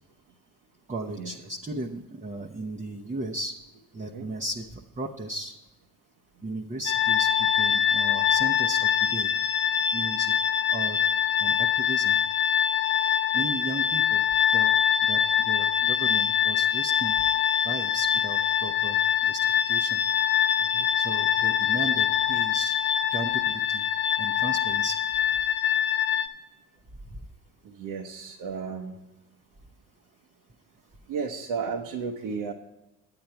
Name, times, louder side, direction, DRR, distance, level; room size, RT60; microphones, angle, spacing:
voice 1, 0.9-3.6 3.9-5.5 6.4-9.3 9.9-10.3 10.7-11.0 11.4-12.1 13.3-14.2 14.5-14.7 15.0-17.2 17.6-19.0 19.2-20.0 21.0-22.8 23.1-23.8 24.2-25.0 27.1-27.2, right 1 dB, 20° right, 0 dB, 1.0 m, -35 dB
sound 1, 6.8-26.3, left 9 dB, 85° left, 0.8 m, -24 dB
voice 2, 27.6-28.9 31.1-32.5, right 5 dB, 65° right, 1 dB, 1.2 m, -34 dB
9.3 x 9.1 x 4.5 m, 1.0 s
hypercardioid pair, 70°, 42 cm